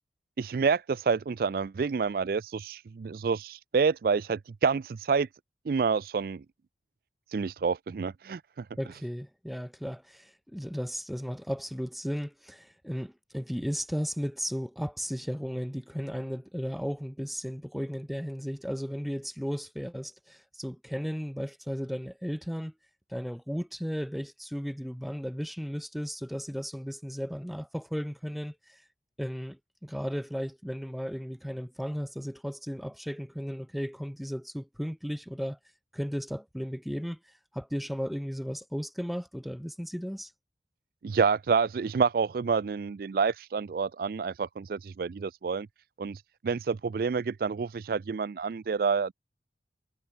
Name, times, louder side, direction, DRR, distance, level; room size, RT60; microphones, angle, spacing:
voice 1, 0.4-5.3 5.7-6.4 7.3-8.6 41.0-45.7 46.0-49.1, right 5 dB, 50° right, 0.3 m, -28 dB
voice 2, 8.8-22.7 23.1-28.8 29.2-35.6 35.9-40.3, equal, ahead, 2.5 m, -35 dB
head